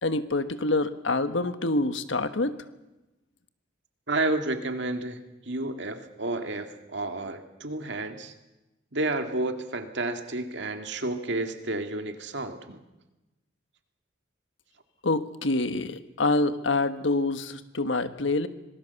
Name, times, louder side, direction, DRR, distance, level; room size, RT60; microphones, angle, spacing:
voice 1, 0.0-2.5 15.0-18.5, left 2 dB, 75° left, 10 dB, 1.3 m, -26 dB
voice 2, 4.1-8.3 8.9-12.8, right 2 dB, 65° right, 6 dB, 2.2 m, -31 dB
26.0 x 20.0 x 7.0 m, 1.0 s
head